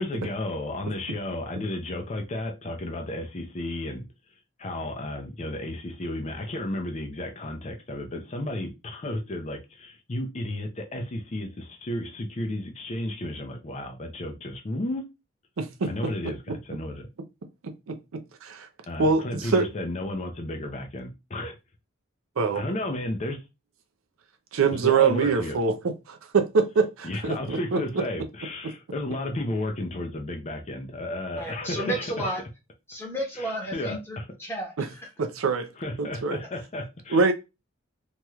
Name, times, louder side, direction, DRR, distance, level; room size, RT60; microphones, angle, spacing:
voice 1, 0.0-4.1 4.6-15.0 15.8-17.1 18.9-21.6 22.6-23.4 24.7-25.6 27.0-32.3 33.3-34.3 35.8-37.3, left 1 dB, 30° left, 0.5 m, -33 dB
voice 2, 15.6-15.9 19.0-19.7 22.4-22.6 24.5-25.7 26.1-27.8 35.2-35.7 36.0-36.4 37.1-37.3, right 5 dB, 80° right, 0.5 m, -23 dB
voice 3, 31.4-32.4 32.9-35.1, equal, 10° left, 1.0 m, -33 dB
3.1 x 2.9 x 2.3 m
head